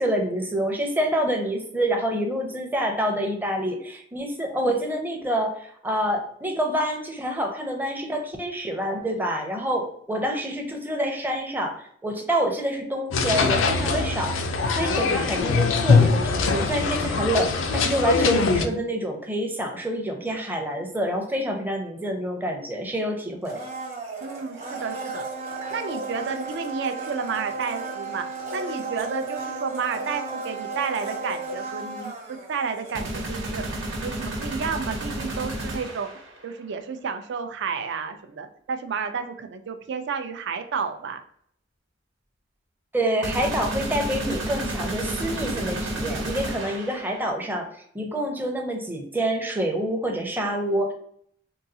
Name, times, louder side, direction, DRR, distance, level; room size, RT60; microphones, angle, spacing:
voice 1, 0.0-14.3 14.8-23.6 42.9-47.7 47.9-50.9, right 1 dB, 10° right, 2 dB, 0.5 m, -27 dB
sound 1, 13.1-18.6, left 4 dB, 90° left, 0.4 m, -22 dB
Domestic sounds home sounds, 23.4-33.4 33.7-33.8, right 3 dB, 40° right, 1.0 m, -34 dB
voice 2, 24.2-25.2 25.7-28.3 28.5-33.7 34.0-41.2, right 5 dB, 65° right, 8 dB, 0.4 m, -31 dB
sound 2, 32.9-36.3 43.2-47.3, right 1 dB, 80° right, 1.0 m, -31 dB
3.8 x 2.3 x 2.6 m, 0.65 s
head